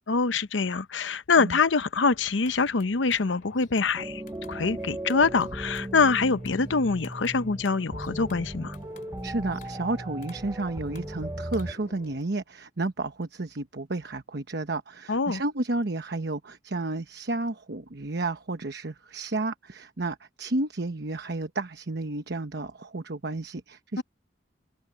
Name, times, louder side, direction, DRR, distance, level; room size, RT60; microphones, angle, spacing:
voice 1, 0.1-4.2 4.5-8.8 15.1-15.4 24.0-24.1, left 4 dB, 85° left, 0.8 m, -24 dB
sound 1, 2.1-12.2, left 2 dB, 50° left, 2.7 m, -51 dB
sound 2, 4.0-11.7, right 1 dB, 15° right, 0.8 m, -37 dB
voice 2, 9.2-24.0, right 2 dB, 60° right, 1.1 m, -32 dB
head